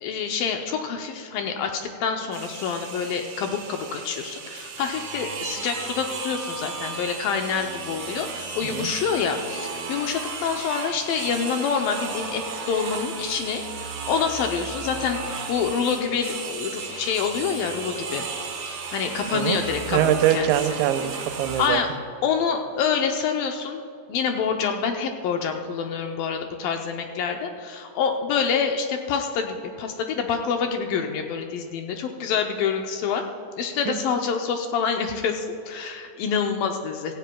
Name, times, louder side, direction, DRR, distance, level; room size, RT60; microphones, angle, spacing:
voice 1, 0.0-18.3 18.6-20.5 21.6-21.9 22.2-23.8 24.1-33.2 33.6-37.2, left 6 dB, 75° left, 4 dB, 2.2 m, -27 dB
sound 1, 2.3-21.7, right 5 dB, 60° right, 2.6 m, -35 dB
voice 2, 19.9-21.8 33.9-34.0, right 11 dB, 85° right, 8 dB, 2.7 m, -23 dB
17.0 x 15.0 x 2.3 m, 2.6 s
omnidirectional pair, 4.5 m